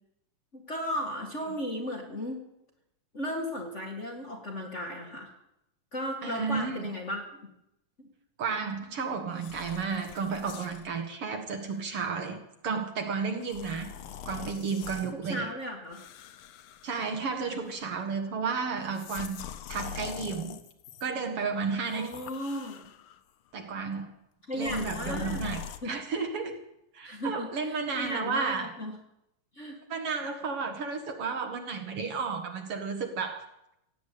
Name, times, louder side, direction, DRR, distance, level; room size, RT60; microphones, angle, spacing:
voice 1, 0.5-2.4 3.1-5.3 5.9-7.2 8.0-8.1 15.1-16.0 21.9-22.9 24.5-25.4 25.8-26.0 27.0-28.9 29.5-29.8, equal, 30° left, 0 dB, 1.8 m, -35 dB
voice 2, 6.2-6.9 8.4-13.9 14.3-15.5 16.8-19.4 19.7-20.6 21.0-22.1 23.5-24.1 24.5-26.6 26.9-28.7 29.9-33.5, right 5 dB, 55° right, 5 dB, 2.2 m, -32 dB
sound 1, 9.3-10.9 11.6-11.8 13.4-15.1 15.9-17.3 17.6-18.0 18.8-21.1 21.8-23.2 24.6-25.8, left 8 dB, 70° left, 1.3 m, -43 dB
16.5 x 10.5 x 8.4 m, 0.85 s
omnidirectional pair, 3.3 m